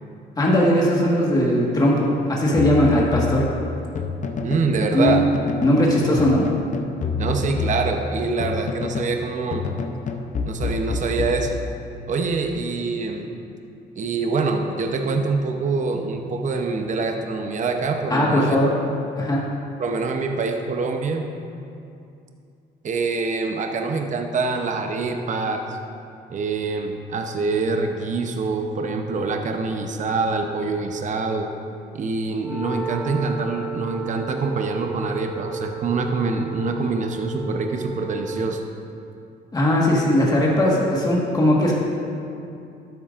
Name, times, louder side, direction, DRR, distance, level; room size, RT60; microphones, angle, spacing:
voice 1, 0.4-3.5 4.9-5.2 5.6-6.4 18.1-18.8 19.2-19.4 39.5-41.7, left 1 dB, 20° left, -4 dB, 1.6 m, -19 dB
sound 1, 2.6-4.7 5.1-5.8 6.2-9.2 9.5-11.9, left 4 dB, 45° left, 0.7 m, -28 dB
voice 2, 4.4-5.2 7.2-9.6 10.4-11.6 12.1-13.3 14.0-18.6 19.8-21.3 22.8-25.8 26.3-31.5 31.9-38.6, right 4 dB, 45° right, 4 dB, 0.8 m, -25 dB
Wind instrument woodwind instrument, 32.3-38.6, right 5 dB, 10° right, 0.9 m, -33 dB
12.5 x 9.1 x 2.5 m, 2.6 s
cardioid pair, 90°, 18 cm